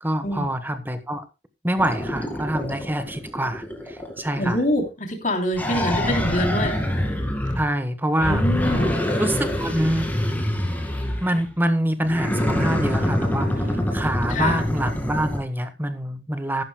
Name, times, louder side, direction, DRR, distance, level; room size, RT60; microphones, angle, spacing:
voice 1, 0.0-1.2 1.6-4.6 7.5-8.4 9.2-10.1 11.2-16.6, right 1 dB, 10° right, 10 dB, 1.2 m, -25 dB
sound 1, 1.8-4.6 5.5-7.8 8.2-11.5 12.0-15.4, left 1 dB, 10° left, 2.2 m, -25 dB
voice 2, 4.4-6.7 8.2-9.0 14.3-14.6, left 1 dB, 45° left, 3 dB, 3.2 m, -25 dB
14.0 x 12.0 x 2.2 m, 0.26 s
head